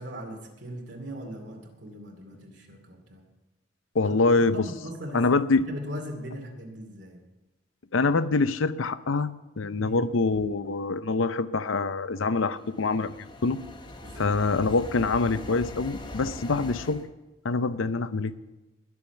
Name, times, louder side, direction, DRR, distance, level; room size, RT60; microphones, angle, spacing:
voice 1, 0.0-3.3 4.0-7.2 9.8-10.0 14.0-14.4, equal, 60° right, 3 dB, 2.5 m, -39 dB
voice 2, 3.9-4.7 5.1-5.6 7.9-13.1 13.4-13.6 14.2-17.0 17.4-18.3, left 3 dB, 85° left, 14 dB, 0.6 m, -25 dB
sound 1, 12.4-17.1, left 1 dB, 25° left, 1.0 m, -41 dB
21.0 x 7.2 x 6.9 m, 1.1 s
head